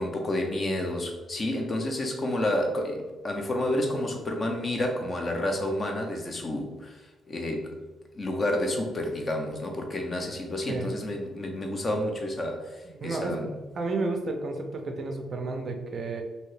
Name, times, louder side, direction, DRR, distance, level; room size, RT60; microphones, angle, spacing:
voice 1, 0.0-7.0 7.3-7.8 8.1-13.5, left 1 dB, 30° left, 3 dB, 0.5 m, -30 dB
voice 2, 12.9-16.2, right 3 dB, 40° right, 4 dB, 0.4 m, -32 dB
2.7 x 2.7 x 3.2 m, 1.2 s
cardioid pair, 160°, 0 cm